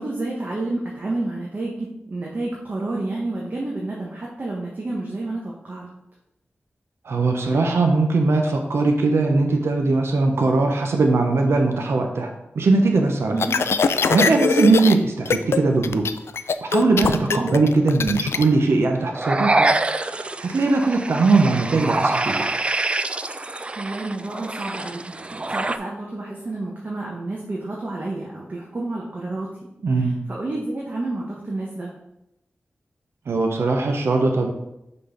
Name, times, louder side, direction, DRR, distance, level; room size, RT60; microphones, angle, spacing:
voice 1, 0.0-5.9 13.3-13.6 17.2-17.5 23.8-25.1 25.5-29.5 30.0-31.9, right 2 dB, 45° right, -3 dB, 1.1 m, -30 dB
voice 2, 7.0-13.3 14.1-16.1 16.6-19.7 20.1-22.5 29.8-30.1 33.3-34.5, right 3 dB, 80° right, 3 dB, 0.7 m, -20 dB
sound 1, 13.4-14.9 15.3-15.6 15.8-18.4, left 5 dB, 80° left, 0.3 m, -21 dB
sound 2, 19.1-25.8, right 2 dB, 25° right, 0.3 m, -25 dB
5.8 x 3.9 x 5.0 m, 0.87 s
wide cardioid pair, 90°, 4 cm